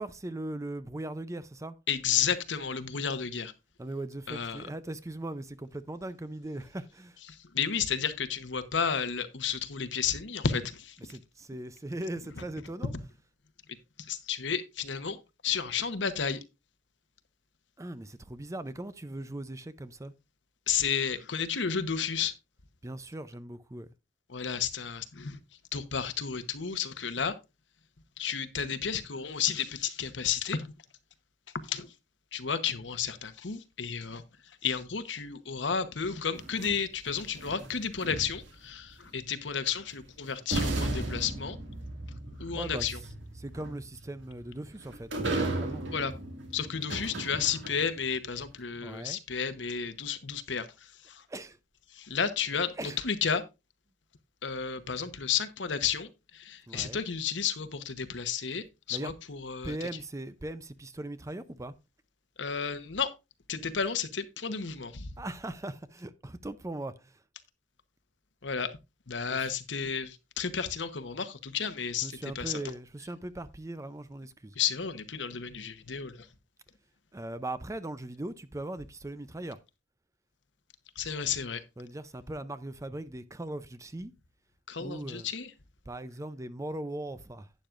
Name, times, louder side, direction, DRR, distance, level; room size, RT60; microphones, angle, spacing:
voice 1, 0.0-1.7 3.8-7.2 11.0-12.9 17.8-20.1 22.8-23.9 42.5-43.0 43.4-45.1 45.4-45.8 48.8-49.2 51.3-51.6 52.7-53.0 56.7-57.0 58.9-59.1 59.6-61.7 65.2-67.2 69.3-69.5 72.0-74.6 77.1-79.6 81.8-84.1 84.8-85.3 85.9-87.5, right 1 dB, 15° right, 0.5 m, -39 dB
voice 2, 1.9-3.5 4.3-4.6 7.5-11.0 14.1-15.2 15.4-16.4 20.7-22.3 24.3-25.4 25.7-27.3 28.2-30.7 31.7-31.9 32.3-34.2 34.6-41.6 42.4-43.0 45.9-46.1 46.5-51.2 51.9-53.4 54.4-59.8 62.4-63.1 63.5-65.1 68.4-68.7 69.1-72.5 74.6-76.3 81.0-81.6 84.7-85.5, left 7 dB, 80° left, 1.0 m, -32 dB
sound 1, 36.3-38.7 39.9-40.0 40.5-48.0, right 2 dB, 80° right, 2.1 m, -35 dB
11.5 x 9.2 x 2.5 m
head